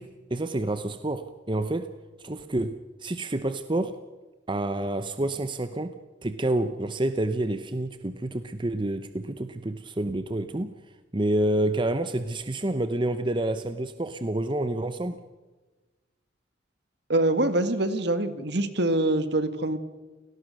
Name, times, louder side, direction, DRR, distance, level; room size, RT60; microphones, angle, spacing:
voice 1, 0.0-1.9 2.2-4.0 4.5-6.0 6.2-10.7 11.1-15.2, right 1 dB, 25° right, 10 dB, 0.8 m, -28 dB
voice 2, 17.1-19.8, right 1 dB, 60° right, 11 dB, 1.8 m, -24 dB
29.0 x 18.0 x 6.5 m, 1.2 s
head